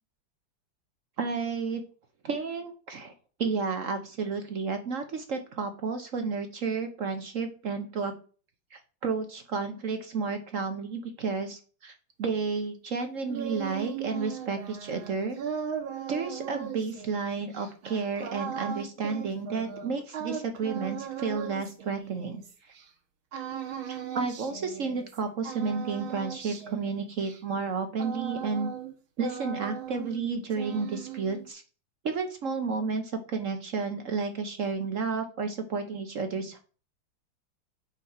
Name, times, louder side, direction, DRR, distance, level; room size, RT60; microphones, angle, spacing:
voice 1, 1.2-1.8 2.2-3.1 3.4-8.1 8.7-11.9 12.2-15.4 16.1-22.4 23.8-28.7 29.2-31.6 32.0-36.6, right 4 dB, 60° right, 7 dB, 0.8 m, -31 dB
sound 1, 13.0-22.8 23.3-25.2 25.4-28.9 29.2-30.2 30.5-31.5, right 8 dB, 80° right, 1.9 m, -38 dB
9.0 x 4.1 x 4.2 m, 0.39 s
omnidirectional pair, 2.2 m